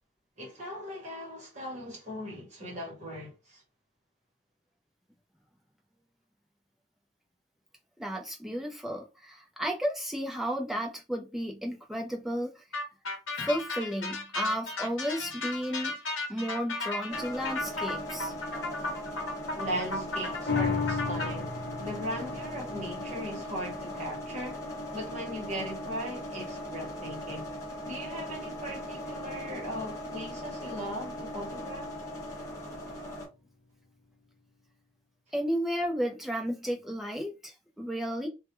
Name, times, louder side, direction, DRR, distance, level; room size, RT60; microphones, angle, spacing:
voice 1, 0.4-3.6 19.5-27.5 27.8-31.9, equal, 35° right, 0.9 m, -38 dB
voice 2, 8.0-12.6 13.4-16.0 16.3-18.3 35.3-38.3, equal, ahead, 0.4 m, -33 dB
sound 1, 12.7-21.3, left 2 dB, 90° left, 0.7 m, -35 dB
sound 2, 17.1-33.3, left 1 dB, 15° left, 0.8 m, -39 dB
sound 3, 20.5-27.1 27.6-27.7, left 5 dB, 55° left, 0.6 m, -36 dB
2.2 x 2.2 x 2.9 m
head